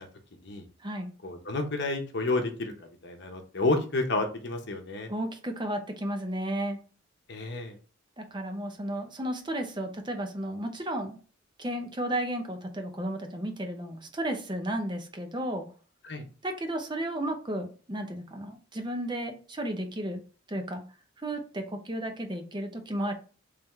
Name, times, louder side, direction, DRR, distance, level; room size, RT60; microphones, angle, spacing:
voice 1, 1.2-5.1 7.3-7.8 16.0-16.2, left 2 dB, 55° left, 4 dB, 0.9 m, -30 dB
voice 2, 5.1-6.8 8.2-11.2 11.6-15.7 16.4-20.2 20.5-20.8 21.2-23.1, right 1 dB, 20° right, 5 dB, 0.7 m, -33 dB
3.6 x 3.4 x 3.2 m, 0.37 s
head